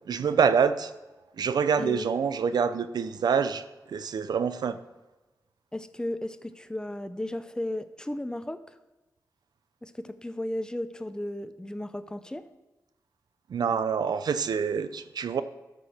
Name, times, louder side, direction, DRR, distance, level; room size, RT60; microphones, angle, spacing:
voice 1, 0.1-0.9 1.4-4.8 13.5-15.4, right 6 dB, 75° right, 0.5 m, -26 dB
voice 2, 5.7-8.6 9.8-12.5, left 1 dB, 10° left, 0.6 m, -34 dB
12.5 x 6.2 x 4.3 m
cardioid pair, 75°, 7 cm